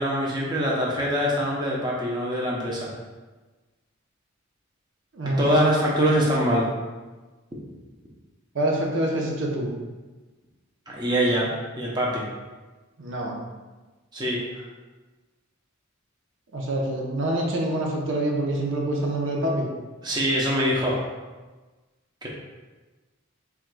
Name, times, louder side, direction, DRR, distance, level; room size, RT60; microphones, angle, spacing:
voice 1, 0.0-2.9 5.4-6.6 10.9-12.2 14.1-14.6 20.0-21.0 22.2-22.3, equal, 20° right, -4 dB, 0.6 m, -24 dB
voice 2, 8.5-9.7 13.0-13.3 16.5-19.7, right 1 dB, 65° right, -2 dB, 0.7 m, -26 dB
4.6 x 3.6 x 2.2 m, 1.2 s
head